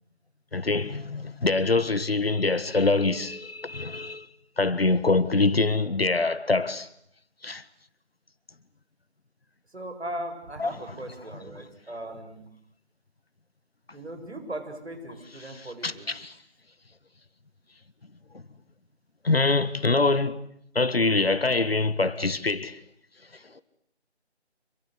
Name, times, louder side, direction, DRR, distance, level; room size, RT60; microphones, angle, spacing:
voice 1, 0.5-4.3 4.6-6.9 7.4-7.6 10.6-10.7 15.4-15.5 15.8-16.3 18.3-18.4 19.2-20.4 20.7-22.8, left 3 dB, 60° left, 1.6 m, -24 dB
voice 2, 9.7-12.5 13.9-16.1, right 1 dB, 70° right, 7.4 m, -38 dB
27.5 x 23.0 x 8.0 m
figure-of-eight pair, 175°, 34 cm